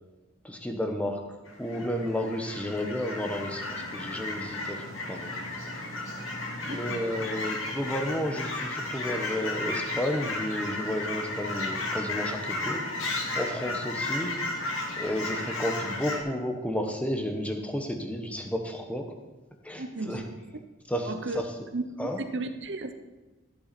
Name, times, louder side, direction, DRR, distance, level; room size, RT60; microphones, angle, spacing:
voice 1, 0.4-1.2 1.6-5.3 6.6-12.8 13.4-14.4 15.0-19.1 19.6-20.2 20.9-21.1 21.3-21.4 22.0-22.2, equal, 5° left, 3 dB, 1.2 m, -32 dB
Fowl / Chirp tweet, 1.5-16.2, left 2 dB, 80° left, 2.2 m, -34 dB
voice 2, 6.7-7.0 19.8-20.2 21.0-21.4 21.7-22.9, right 2 dB, 60° right, 7 dB, 0.8 m, -34 dB
14.5 x 8.6 x 4.3 m, 1.2 s
head